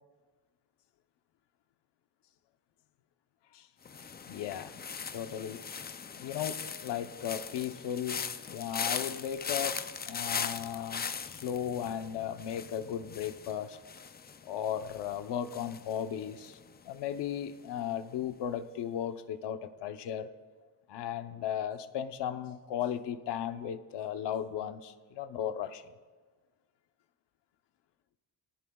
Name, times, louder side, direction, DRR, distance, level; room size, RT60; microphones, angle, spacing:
sound 1, 3.9-16.9 17.2-17.6, left 6 dB, 25° left, 0.5 m, -40 dB
voice 1, 4.3-4.8 5.1-5.6 6.1-13.8 14.4-16.6 16.8-20.3 20.9-25.8, left 9 dB, 80° left, 9 dB, 0.9 m, -36 dB
25.5 x 18.5 x 2.4 m, 1.4 s
cardioid pair, 140°, 41 cm